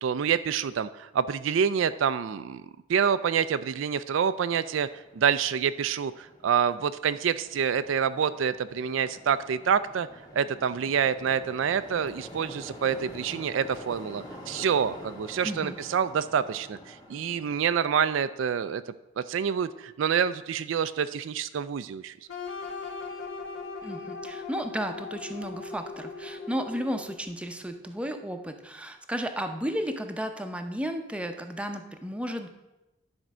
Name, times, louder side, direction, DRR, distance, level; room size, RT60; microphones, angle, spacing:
voice 1, 0.0-2.6 2.9-10.1 10.3-18.8 19.2-22.1, right 7 dB, 70° right, 13 dB, 0.4 m, -27 dB
sound 1, 4.3-17.8, equal, 20° left, 1.3 m, -47 dB
voice 2, 15.4-15.8 23.8-32.5, equal, 5° right, 5 dB, 0.6 m, -33 dB
sound 2, 22.3-27.2, left 4 dB, 80° left, 1.4 m, -39 dB
10.5 x 4.4 x 6.1 m, 0.99 s
head